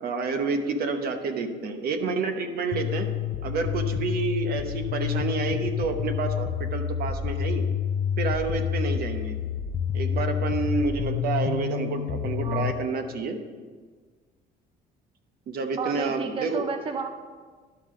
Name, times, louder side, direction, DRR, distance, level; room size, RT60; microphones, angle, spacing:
voice 1, 0.0-3.1 3.4-7.6 8.2-9.4 9.9-13.4 15.5-16.7, right 4 dB, 65° right, 6 dB, 1.0 m, -29 dB
sound 1, 2.7-12.7, left 8 dB, 65° left, 0.6 m, -28 dB
voice 2, 15.8-17.1, right 5 dB, 30° right, 7 dB, 0.5 m, -31 dB
11.5 x 5.7 x 5.0 m, 1.5 s
cardioid pair, 110°, 17 cm